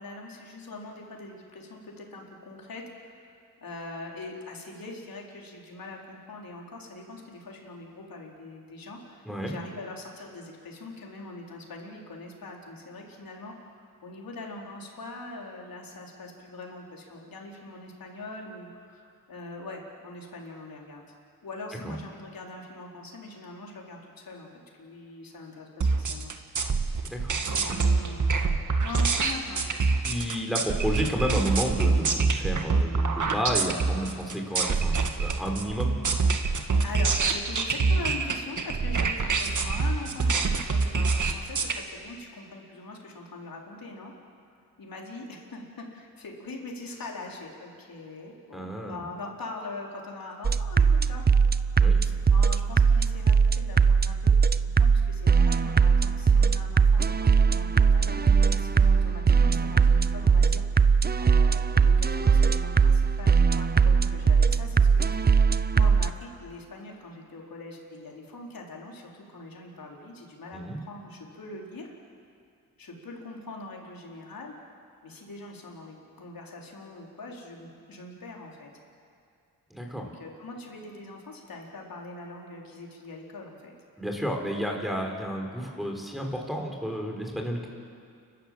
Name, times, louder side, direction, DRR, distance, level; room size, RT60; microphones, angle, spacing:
voice 1, 0.0-3.3 3.6-21.0 21.4-24.5 24.8-26.3 27.4-28.6 28.8-29.6 36.8-44.1 44.8-51.2 52.0-54.3 54.6-60.6 61.2-71.9 72.8-74.5 75.0-78.7 79.9-83.7, left 2 dB, 60° left, -1 dB, 4.2 m, -42 dB
sound 1, 25.8-41.8, right 4 dB, 50° right, 1.8 m, -25 dB
voice 2, 27.0-27.8 30.1-36.0 48.5-49.0 51.8-52.0 70.5-70.8 79.7-80.1 84.0-87.7, equal, ahead, 2 dB, 4.7 m, -31 dB
sound 2, 50.4-66.1, right 5 dB, 25° right, 0.6 m, -21 dB
29.5 x 13.0 x 7.8 m, 2.4 s
cardioid pair, 60°, 38 cm